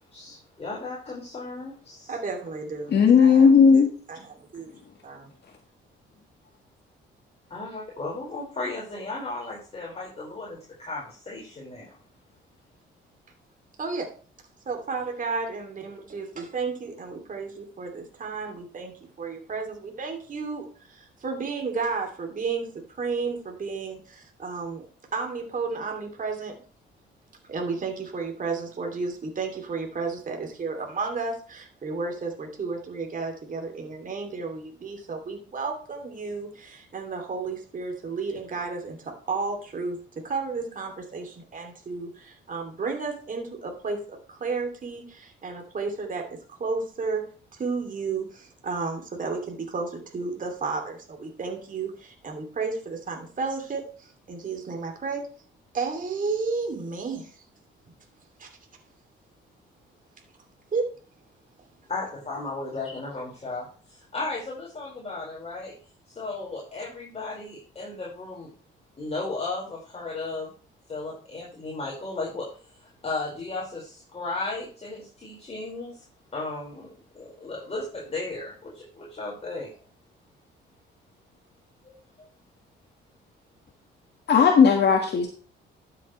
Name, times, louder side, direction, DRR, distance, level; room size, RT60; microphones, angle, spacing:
voice 1, 0.1-2.1 7.5-11.9 61.9-65.7 66.1-68.5 69.0-70.5 70.9-72.5 73.0-76.0 76.3-79.7 81.8-82.3, left 3 dB, 30° left, -4 dB, 5.0 m, -35 dB
voice 2, 2.1-5.3 13.8-14.1 14.7-22.7 23.0-24.9 25.1-26.5 27.5-40.0 40.2-47.2 47.5-55.2 55.7-57.4 58.4-58.5 60.7-60.9, right 4 dB, 40° right, 3 dB, 2.8 m, -32 dB
voice 3, 2.9-3.9 84.3-85.3, left 6 dB, 55° left, 2 dB, 1.7 m, -16 dB
12.0 x 7.8 x 3.2 m, 0.40 s
cardioid pair, 90°, 20 cm